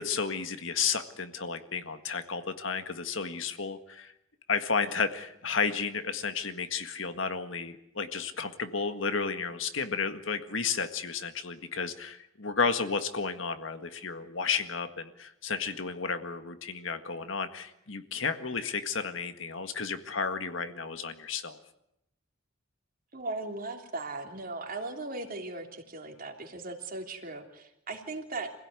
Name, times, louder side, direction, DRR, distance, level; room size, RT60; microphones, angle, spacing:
voice 1, 0.0-4.1 4.5-21.6, left 5 dB, 65° left, 9 dB, 1.8 m, -32 dB
voice 2, 23.1-28.5, right 2 dB, 45° right, 4 dB, 3.2 m, -38 dB
26.5 x 16.5 x 9.7 m, 0.82 s
head